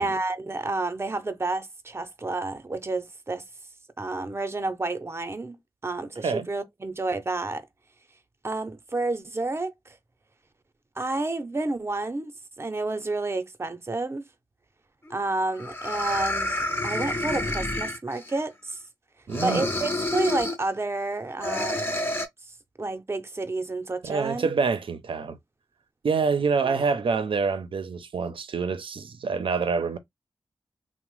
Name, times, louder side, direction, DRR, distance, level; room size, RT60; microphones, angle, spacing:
voice 1, 0.0-3.4 4.0-5.6 5.8-7.7 8.4-10.0 11.0-12.3 12.6-14.2 15.1-18.8 19.4-22.0 22.8-24.5 26.6-26.9, right 2 dB, 30° right, 0.6 m, -30 dB
sound 1, 15.1-15.2 15.6-18.4 19.3-20.7 21.4-22.3, left 1 dB, 25° left, 0.6 m, -28 dB
voice 2, 19.3-19.7 24.0-25.4 26.0-30.0, right 5 dB, 75° right, 0.5 m, -26 dB
2.9 x 2.0 x 3.0 m
cardioid pair, 55°, 9 cm